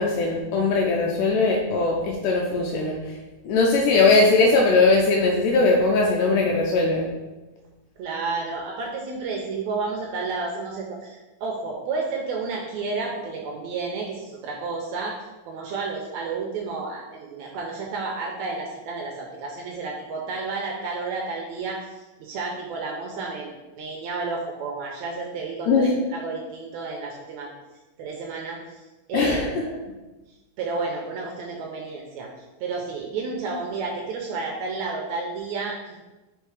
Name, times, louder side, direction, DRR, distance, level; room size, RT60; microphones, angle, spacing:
voice 1, 0.0-3.0 3.4-7.1 25.7-26.0 29.1-29.5, left 3 dB, 90° left, -1 dB, 2.2 m, -20 dB
voice 2, 8.0-15.2 15.5-23.5 23.7-27.5 28.0-29.5 30.6-32.3 32.6-36.0, right 4 dB, 75° right, 0 dB, 1.8 m, -31 dB
4.9 x 4.5 x 4.7 m, 1.1 s
omnidirectional pair, 3.7 m